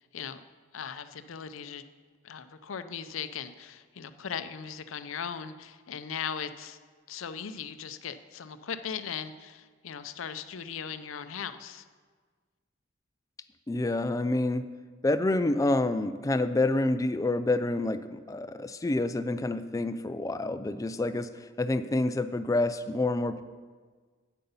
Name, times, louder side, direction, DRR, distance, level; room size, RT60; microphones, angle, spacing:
voice 1, 0.7-1.8 2.2-6.8 7.1-11.8, left 7 dB, 75° left, 11 dB, 0.5 m, -38 dB
voice 2, 13.7-14.7 15.0-23.4, left 2 dB, 15° left, 11 dB, 0.3 m, -28 dB
9.1 x 7.8 x 5.5 m, 1.5 s
head